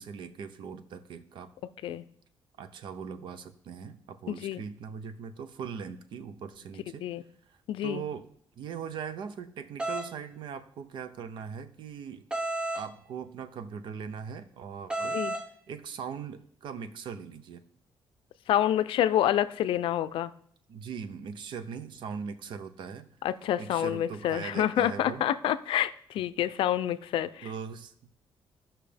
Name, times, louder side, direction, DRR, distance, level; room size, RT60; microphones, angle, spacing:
voice 1, 0.0-1.5 2.6-7.1 7.5-8.3 8.6-12.3 12.7-15.2 15.7-17.6 20.7-23.1 23.6-25.2 27.4-27.9, right 6 dB, 65° right, 12 dB, 0.7 m, -40 dB
voice 2, 4.3-4.6 7.0-7.2 7.7-8.0 15.1-15.3 18.5-20.3 23.2-27.5, left 11 dB, 80° left, 14 dB, 0.4 m, -28 dB
sound 1, 9.8-10.1 12.3-12.9 14.9-15.5, right 2 dB, 10° right, 0.6 m, -31 dB
15.0 x 5.8 x 3.4 m, 0.62 s
cardioid pair, 175°, 9 cm